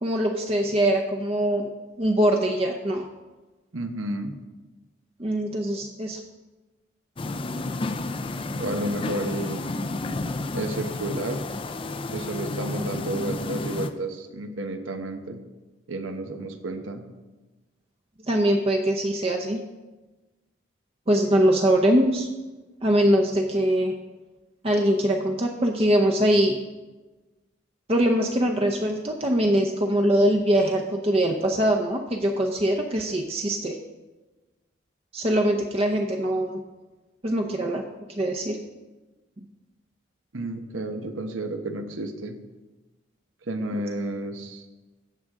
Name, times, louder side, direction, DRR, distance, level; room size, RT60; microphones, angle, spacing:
voice 1, 0.0-1.7 2.0-3.0 5.2-6.2 18.3-19.6 21.1-22.3 22.8-23.9 24.6-26.5 27.9-33.8 35.1-36.6 37.2-37.8 38.2-38.6, right 1 dB, 30° right, 2 dB, 0.6 m, -22 dB
voice 2, 3.7-4.4 8.6-9.7 10.5-11.4 12.1-15.4 15.9-17.0 40.3-42.4 43.5-44.6, right 1 dB, 90° right, 6 dB, 1.0 m, -31 dB
sound 1, 7.2-13.9, left 2 dB, 25° left, 0.4 m, -31 dB
16.0 x 6.4 x 3.7 m, 1.2 s
head